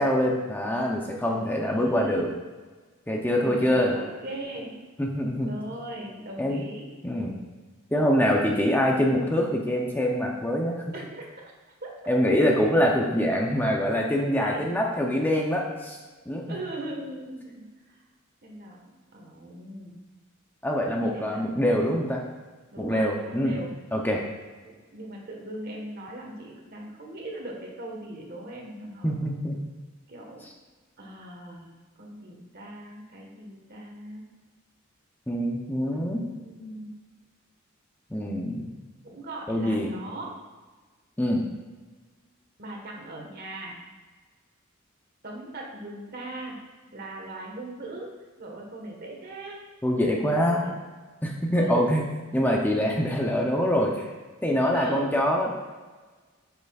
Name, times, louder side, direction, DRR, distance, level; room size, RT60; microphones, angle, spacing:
voice 1, 0.0-2.3 3.1-4.0 5.0-5.5 6.4-6.6 7.0-7.4 7.9-10.8 12.1-16.0 16.3-16.5 20.6-22.2 22.8-23.6 23.9-24.2 29.0-29.5 35.3-36.2 38.1-38.6 39.5-39.9 41.2-41.5 49.8-50.6 51.2-52.0 52.3-54.1 54.4-55.5, equal, 10° left, 0 dB, 0.6 m, -24 dB
voice 2, 1.3-2.3 3.4-4.7 5.4-6.9 10.9-11.3 11.8-12.0 14.4-14.9 15.3-15.7 16.5-18.0 18.4-18.8 19.1-20.0 20.8-21.5 22.7-23.7 24.6-29.2 30.1-30.5 31.0-34.2 35.9-36.9 39.0-40.3 42.6-43.7 45.2-46.6 46.9-48.1 48.4-49.6 50.1-50.7 51.5-51.9 54.7-55.1, right 1 dB, 50° right, 0 dB, 1.4 m, -39 dB
8.3 x 6.7 x 2.4 m, 1.3 s
head